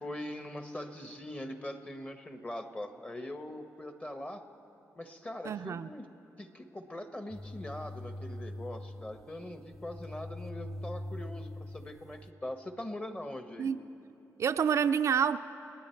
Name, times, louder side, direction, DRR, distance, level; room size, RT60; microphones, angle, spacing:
voice 1, 0.0-4.4 5.0-6.0 6.4-13.7, left 1 dB, 20° left, 8 dB, 1.2 m, -42 dB
voice 2, 5.5-5.9 13.6-13.8 14.4-15.4, right 7 dB, 55° right, 10 dB, 0.4 m, -28 dB
sound 1, 7.3-12.3, left 1 dB, 5° left, 0.6 m, -43 dB
29.0 x 9.7 x 4.5 m, 2.8 s
cardioid pair, 85°, 6 cm